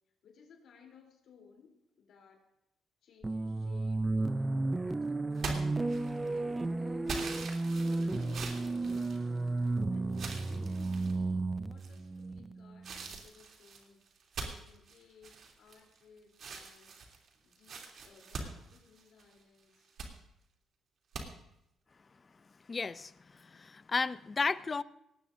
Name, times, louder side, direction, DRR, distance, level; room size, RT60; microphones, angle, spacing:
voice 1, 0.2-2.4 3.0-7.1 7.8-9.3 9.9-14.0 14.4-16.9 17.4-19.9, left 6 dB, 70° left, 1 dB, 3.4 m, -59 dB
sound 1, 3.2-13.1, right 2 dB, 20° right, 0.5 m, -33 dB
sound 2, 5.4-6.4 7.1-9.7 10.1-11.2 11.8-12.2 12.8-16.0 16.3-19.3 19.7-20.1 21.1-21.3, right 4 dB, 65° right, 3.0 m, -43 dB
voice 2, 22.7-24.8, left 4 dB, 30° left, 16 dB, 0.5 m, -34 dB
18.5 x 18.0 x 2.6 m, 0.84 s
cardioid pair, 90°, 0 cm